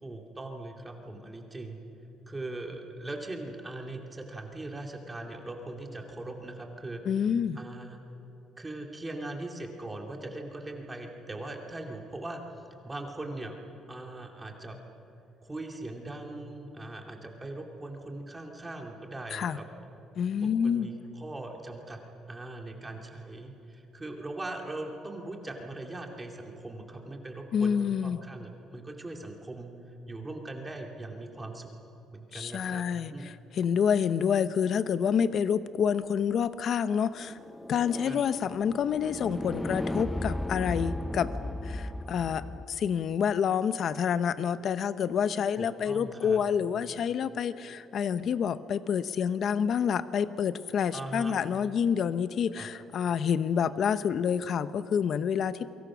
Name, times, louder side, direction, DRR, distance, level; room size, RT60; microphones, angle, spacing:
voice 1, 0.0-1.8 2.3-7.0 7.6-8.0 8.6-12.4 12.8-13.6 13.9-14.8 15.4-20.0 20.4-22.0 22.3-29.7 30.1-31.7 32.1-33.3 38.1-38.2 45.6-46.4 50.9-51.4 52.6-52.7, right 2 dB, 15° right, 2 dB, 2.5 m, -40 dB
voice 2, 7.1-7.6 19.3-19.6 20.2-20.9 27.5-28.2 32.3-37.4 37.7-41.3 41.6-55.7, left 7 dB, 50° left, 13 dB, 0.9 m, -28 dB
sound 1, 37.1-42.6, left 1 dB, 5° left, 0.6 m, -35 dB
29.0 x 24.0 x 6.2 m, 2.9 s
cardioid pair, 135°, 0 cm